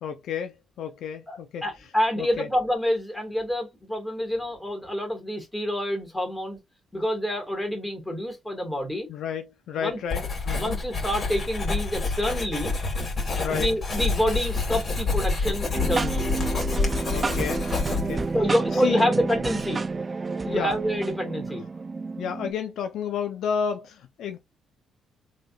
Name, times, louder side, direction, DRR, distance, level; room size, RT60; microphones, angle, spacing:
voice 1, 0.0-1.6 2.2-2.5 9.1-10.8 13.3-13.7 17.1-18.3 18.8-19.1 20.5-20.8 22.2-24.4, left 7 dB, 75° left, 0.6 m, -31 dB
voice 2, 1.3-6.6 6.9-9.1 9.8-10.0 10.6-12.7 13.3-16.3 18.3-19.8 20.4-21.6, equal, 10° left, 2.0 m, -27 dB
Writing, 10.1-18.3, left 3 dB, 40° left, 2.1 m, -28 dB
sound 1, 15.7-22.5, right 3 dB, 30° right, 0.4 m, -30 dB
3.6 x 3.6 x 2.4 m
cardioid pair, 90°, 0 cm